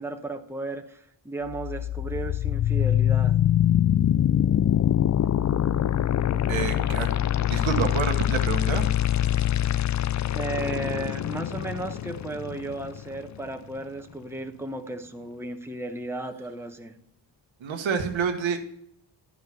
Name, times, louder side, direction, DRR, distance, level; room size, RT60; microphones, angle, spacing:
voice 1, 0.0-3.3 6.3-6.4 10.3-17.0, right 2 dB, 5° right, 4 dB, 1.1 m, -34 dB
sound 1, 1.5-13.5, left 11 dB, 40° left, 0.4 m, -24 dB
voice 2, 6.5-7.1 7.5-8.9 17.6-18.6, right 5 dB, 85° right, 5 dB, 1.3 m, -28 dB
11.0 x 5.2 x 6.8 m, 0.74 s
cardioid pair, 60°, 46 cm